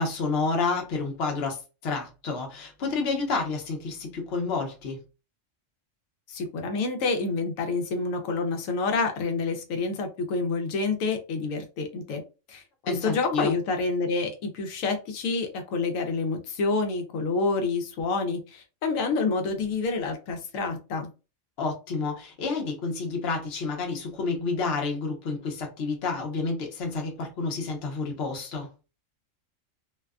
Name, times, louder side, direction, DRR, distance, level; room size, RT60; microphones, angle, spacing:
voice 1, 0.0-5.0 12.8-13.6 21.6-28.7, left 4 dB, 60° left, 0.9 m, -29 dB
voice 2, 6.3-12.2 12.5-21.1, left 4 dB, 85° left, 1.0 m, -28 dB
2.6 x 2.2 x 2.3 m
omnidirectional pair, 1.3 m